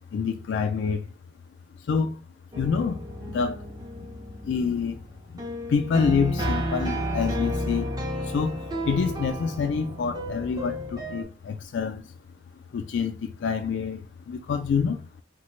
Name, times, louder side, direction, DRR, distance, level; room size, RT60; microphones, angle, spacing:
voice 1, 0.1-1.0 1.9-2.2 2.6-3.6 4.0-4.1 4.4-5.0 5.7-7.9 8.2-8.6 8.9-12.0 12.7-15.0, left 5 dB, 90° left, 0.3 m, -27 dB
sound 1, 2.5-11.2, equal, 20° right, 0.6 m, -32 dB
3.2 x 2.1 x 3.0 m
head